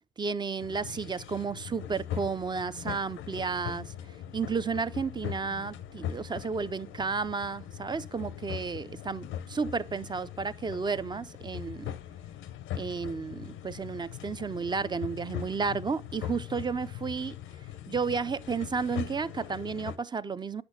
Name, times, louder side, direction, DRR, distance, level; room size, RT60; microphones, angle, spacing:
voice 1, 0.2-3.9 4.3-11.9 12.7-17.4 17.9-20.6, right 5 dB, 20° right, 0.4 m, -32 dB
sound 1, 0.6-20.0, left 10 dB, 90° left, 0.6 m, -41 dB
8.0 x 6.6 x 2.7 m
cardioid pair, 90°, 20 cm